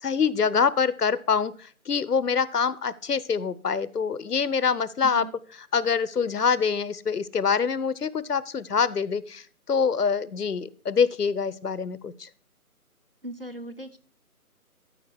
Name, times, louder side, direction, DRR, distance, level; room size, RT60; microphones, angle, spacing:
voice 1, 0.0-5.2 5.7-12.3, left 6 dB, 90° left, 18 dB, 0.7 m, -25 dB
voice 2, 5.0-5.3 13.2-14.0, right 1 dB, 40° right, 12 dB, 0.5 m, -38 dB
13.0 x 5.0 x 4.6 m, 0.42 s
figure-of-eight pair, 155°, 45 cm